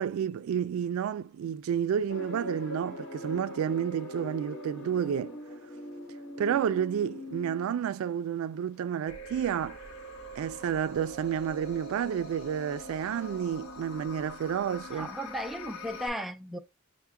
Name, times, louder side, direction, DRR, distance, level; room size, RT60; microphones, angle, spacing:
voice 1, 0.0-5.4 6.4-9.8 10.4-15.1, right 8 dB, 85° right, 0.3 m, -30 dB
sound 1, 2.1-10.0 10.2-10.5, left 1 dB, 60° left, 1.1 m, -42 dB
sound 2, 9.1-16.1, left 1 dB, 85° left, 0.9 m, -43 dB
voice 2, 14.9-16.6, equal, ahead, 0.3 m, -36 dB
5.6 x 2.1 x 3.4 m
head